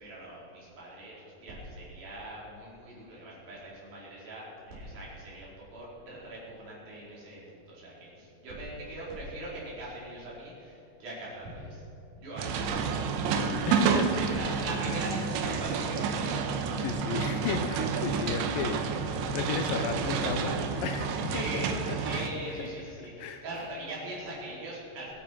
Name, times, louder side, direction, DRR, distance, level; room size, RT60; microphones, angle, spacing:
voice 1, 0.0-11.8 12.2-12.9 14.0-16.8 21.3-25.1, right 1 dB, 55° right, -6 dB, 6.4 m, -41 dB
sound 1, 12.4-22.3, right 5 dB, 85° right, 3.4 m, -30 dB
voice 2, 13.7-14.4 16.8-19.0 19.3-21.8 22.1-22.3 22.6-22.7 23.2-23.4, left 6 dB, 80° left, 7 dB, 2.0 m, -34 dB
23.5 x 9.0 x 6.1 m, 3.0 s
omnidirectional pair, 5.0 m